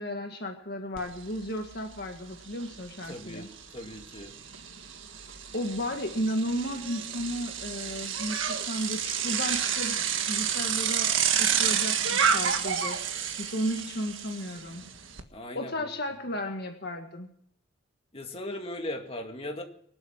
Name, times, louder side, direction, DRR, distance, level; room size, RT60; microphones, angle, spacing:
voice 1, 0.0-3.5 5.5-10.0 10.3-11.1 11.4-13.0 13.4-14.8 15.6-17.3, equal, 50° left, 4 dB, 1.7 m, -34 dB
Bicycle, 1.0-1.1 1.4-15.2, right 8 dB, 70° right, 1.7 m, -30 dB
voice 2, 3.1-4.4 15.3-15.9 18.1-19.6, left 1 dB, 30° left, 3 dB, 2.1 m, -38 dB
25.0 x 8.4 x 6.1 m, 0.64 s
head